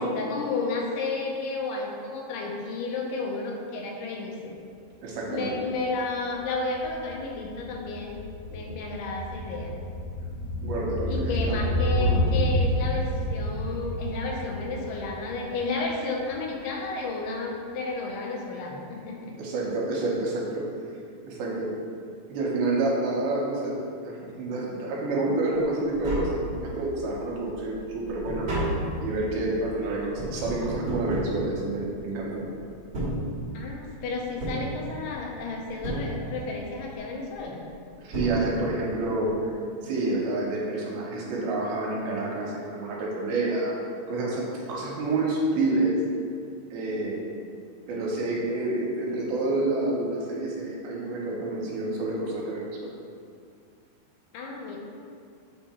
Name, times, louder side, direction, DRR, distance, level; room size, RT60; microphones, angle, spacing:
voice 1, 0.0-4.5 5.3-8.2 8.5-9.7 11.1-19.4 33.5-37.6 54.3-54.8, left 3 dB, 85° left, 0 dB, 2.7 m, -32 dB
voice 2, 5.0-5.5 10.6-11.6 12.0-12.3 19.4-20.6 21.2-21.7 22.3-28.5 29.0-32.4 38.0-39.5 39.8-43.7 44.1-45.9 46.7-47.3 47.9-52.9, right 2 dB, 75° right, -4 dB, 2.6 m, -28 dB
sound 1, 5.5-5.6 5.8-16.2 16.5-16.6, equal, 70° left, 2.6 m, -29 dB
Tap, 25.9-27.0 27.4-32.2 32.8-33.9 34.4-35.4 35.8-36.7 37.7-37.8 38.1-39.0 39.2-39.3, right 1 dB, 55° right, 1.5 m, -33 dB
8.2 x 2.8 x 4.3 m, 2.3 s
omnidirectional pair, 4.6 m